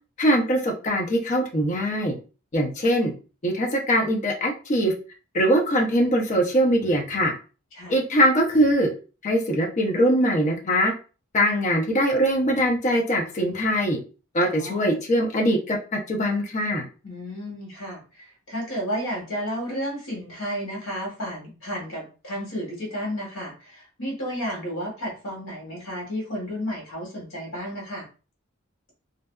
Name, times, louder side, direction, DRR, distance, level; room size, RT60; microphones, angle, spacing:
voice 1, 0.2-2.1 2.5-3.1 3.4-4.9 5.3-7.3 7.9-8.9 9.2-10.9 11.3-14.0 14.3-16.8, equal, 35° left, 1 dB, 0.5 m, -22 dB
voice 2, 14.4-15.0 17.0-28.1, equal, 70° left, -1 dB, 1.2 m, -32 dB
2.5 x 2.2 x 2.2 m, 0.35 s
head